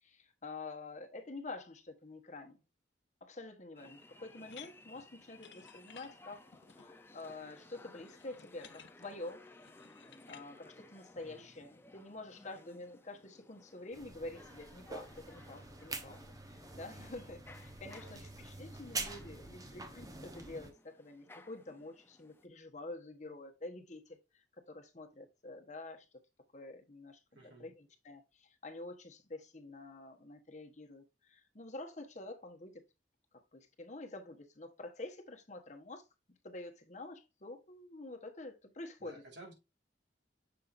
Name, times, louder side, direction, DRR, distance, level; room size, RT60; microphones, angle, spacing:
voice 1, 0.0-2.6 3.2-6.5 6.7-9.4 10.0-16.2 16.4-26.1 26.5-32.8 33.5-36.1 36.4-39.2, left 2 dB, 40° left, 1.1 m, -48 dB
sound 1, 3.8-22.5, left 2 dB, 15° left, 0.6 m, -59 dB
sound 2, 4.5-10.5, left 8 dB, 90° left, 0.7 m, -58 dB
voice 2, 11.2-11.5 18.0-18.3 18.9-19.0 27.3-27.7 39.0-39.5, right 2 dB, 85° right, 2.8 m, -55 dB
sound 3, 13.9-20.7, right 3 dB, 20° right, 0.9 m, -46 dB
7.0 x 5.6 x 2.6 m
head